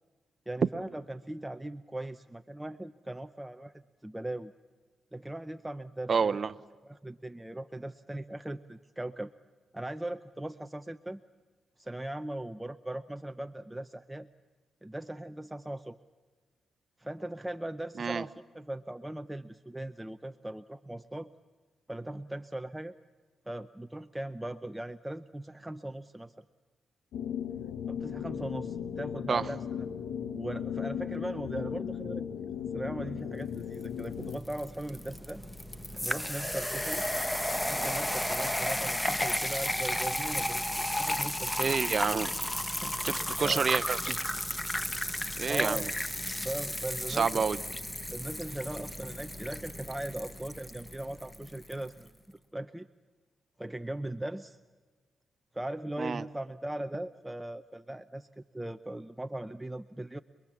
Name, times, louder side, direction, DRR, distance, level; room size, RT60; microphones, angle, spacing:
voice 1, 0.5-4.5 5.1-6.4 6.8-9.3 9.7-11.2 11.8-14.3 14.8-16.0 17.0-21.3 21.9-23.0 23.5-26.3 27.9-29.9 30.3-32.3 32.7-35.4 36.0-37.1 37.6-41.7 42.8-43.7 45.5-45.8 46.4-47.5 48.1-52.9 53.6-54.6 55.5-60.2, right 1 dB, 10° right, 9 dB, 0.7 m, -39 dB
voice 2, 6.1-6.5 18.0-18.2 29.3-29.4 41.6-42.3 43.0-44.2 45.4-45.9 47.1-47.6 56.0-56.2, right 5 dB, 50° right, 14 dB, 0.8 m, -29 dB
sound 1, 27.1-34.4, left 8 dB, 90° left, 1.4 m, -36 dB
sound 2, 33.8-51.8, left 1 dB, 10° left, 1.3 m, -33 dB
26.5 x 21.5 x 7.3 m, 1.4 s
cardioid pair, 75°, 0 cm